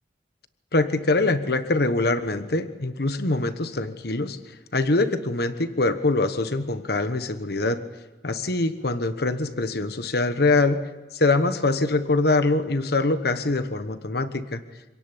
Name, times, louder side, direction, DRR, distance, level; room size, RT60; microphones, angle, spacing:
voice 1, 0.7-7.8 8.2-14.6, left 2 dB, 60° left, 10 dB, 1.2 m, -24 dB
26.5 x 17.5 x 10.0 m, 1.1 s
head